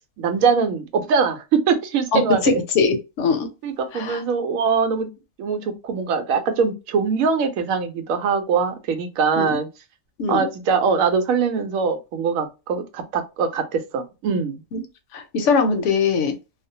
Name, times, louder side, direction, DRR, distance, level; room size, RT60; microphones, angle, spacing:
voice 1, 0.2-2.6 3.6-5.1 5.4-9.7 10.3-14.6, right 5 dB, 85° right, 1.0 m, -22 dB
voice 2, 2.1-3.5 3.9-4.2 9.4-9.5 10.2-10.5 14.7-14.8 15.1-16.3, left 4 dB, 70° left, 0.9 m, -21 dB
2.4 x 2.1 x 2.7 m
omnidirectional pair, 1.4 m